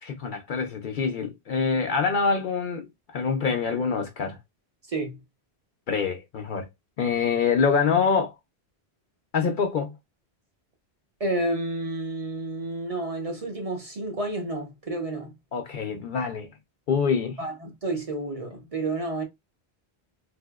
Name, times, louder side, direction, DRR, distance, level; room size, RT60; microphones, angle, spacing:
voice 1, 0.0-4.4 5.9-6.7 7.0-8.3 9.3-9.9 15.5-16.5 16.9-17.4, left 5 dB, 60° left, 0.6 m, -25 dB
voice 2, 4.9-5.2 11.2-15.3 17.4-19.2, right 2 dB, 40° right, 0.8 m, -30 dB
3.3 x 2.7 x 2.2 m
omnidirectional pair, 1.1 m